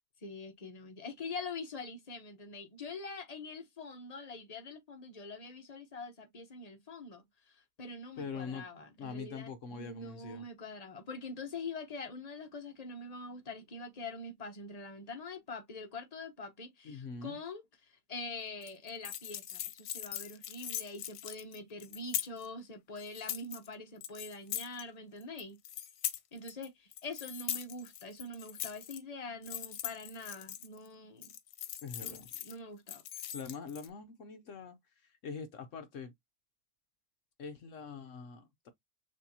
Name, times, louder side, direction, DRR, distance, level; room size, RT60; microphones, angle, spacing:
voice 1, 0.2-25.6 26.3-31.3 32.0-33.0, left 3 dB, 30° left, 0.8 m, -44 dB
voice 2, 8.2-8.7 9.0-10.5 16.8-17.4 31.8-32.3 33.3-36.1 37.4-38.7, left 5 dB, 60° left, 0.9 m, -43 dB
sound 1, 18.6-22.5 23.0-23.7 24.0-24.8 25.2-26.7 26.9-29.0 29.4-30.9 31.2-32.5 32.9-33.9, left 11 dB, 85° left, 1.2 m, -41 dB
6.4 x 2.7 x 2.7 m
omnidirectional pair, 1.6 m